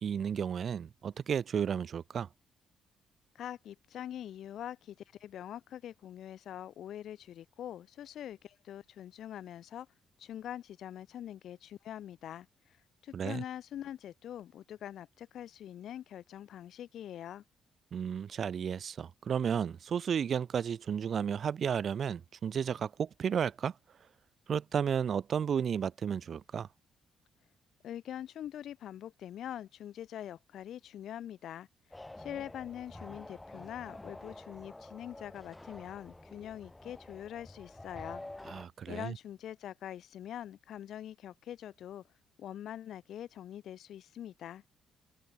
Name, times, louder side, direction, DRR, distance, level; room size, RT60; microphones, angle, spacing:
voice 1, 0.0-2.3 13.1-13.4 17.9-23.7 24.5-26.7 38.5-39.1, right 7 dB, 55° right, 1.1 m, -33 dB
voice 2, 3.3-9.9 10.2-12.5 13.0-17.4 27.8-31.7 32.2-38.2 38.9-42.0 42.4-44.6, left 11 dB, 70° left, 1.4 m, -44 dB
sound 1, 31.9-38.7, left 2 dB, 10° left, 2.0 m, -48 dB
cardioid pair, 90°, 0 cm